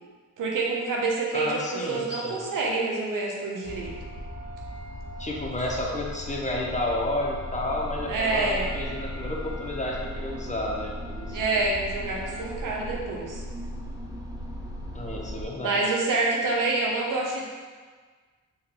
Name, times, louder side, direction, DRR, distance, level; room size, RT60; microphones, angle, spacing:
voice 1, 0.4-3.9 8.1-8.7 11.3-13.4 15.6-17.4, right 3 dB, 75° right, -2 dB, 0.8 m, -27 dB
voice 2, 1.3-2.5 5.2-11.6 14.9-15.8, left 1 dB, 20° left, -2 dB, 0.8 m, -31 dB
Wind instrument woodwind instrument, 2.5-12.6, right 2 dB, 40° left, 1.1 m, -47 dB
sound 1, 3.6-15.5, equal, 55° left, 0.7 m, -38 dB
sound 2, 7.7-15.4, right 1 dB, 10° right, 0.6 m, -46 dB
3.8 x 3.0 x 2.9 m, 1.5 s
supercardioid pair, 50°, 32 cm